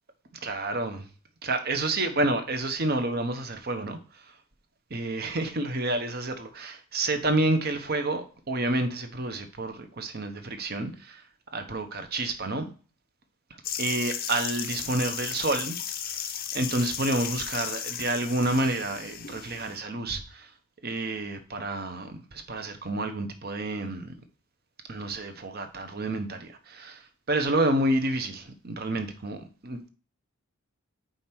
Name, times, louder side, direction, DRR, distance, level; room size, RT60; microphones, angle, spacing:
voice 1, 0.4-1.0 1.4-4.0 4.9-11.2 11.5-12.7 13.8-15.8 16.1-16.3 16.5-20.5 20.8-24.1 24.9-27.0 27.3-29.9, right 2 dB, 45° right, 0.9 m, -29 dB
sound 1, 13.6-19.8, left 9 dB, 40° left, 0.6 m, -35 dB
5.2 x 4.3 x 5.9 m
head